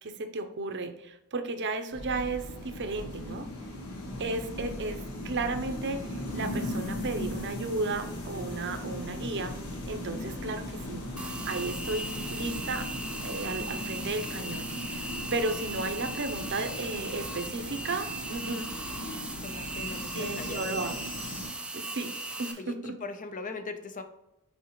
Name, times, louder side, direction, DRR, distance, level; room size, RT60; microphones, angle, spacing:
voice 1, 0.0-3.5 4.2-5.0 5.2-9.6 9.9-12.9 13.2-18.7 20.1-21.0 21.7-22.1 22.4-22.9, right 3 dB, 55° right, 7 dB, 0.7 m, -34 dB
sound 1, 1.9-21.5, left 1 dB, 85° left, 1.5 m, -38 dB
sound 2, 11.2-22.5, right 2 dB, 5° right, 0.5 m, -38 dB
voice 2, 19.4-20.8 22.6-24.0, left 3 dB, 35° left, 8 dB, 0.7 m, -40 dB
6.4 x 4.8 x 3.1 m, 0.88 s
head